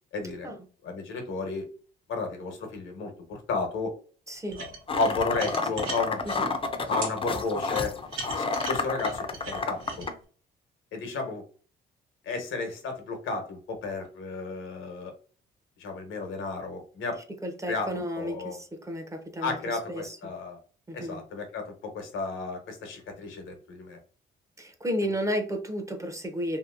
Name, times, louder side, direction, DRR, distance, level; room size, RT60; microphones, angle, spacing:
voice 1, 0.1-0.5 0.8-1.7 2.1-3.9 4.5-6.2 6.9-7.9 8.4-10.1 10.9-11.4 12.2-15.1 15.8-17.2 17.7-18.6 19.4-20.6 20.9-24.0 25.0-25.1, left 3 dB, 80° left, 4 dB, 1.0 m, -33 dB
voice 2, 4.3-4.6 5.5-5.9 17.4-19.6 19.9-20.3 20.9-21.2 24.6-26.6, equal, 15° right, 4 dB, 0.7 m, -33 dB
sound 1, 4.5-6.4 7.0-7.1 7.7-10.1, right 4 dB, 90° right, 1.0 m, -38 dB
sound 2, 4.9-10.1, left 3 dB, 25° left, 0.5 m, -30 dB
2.8 x 2.8 x 2.5 m, 0.40 s
cardioid pair, 90°, 20 cm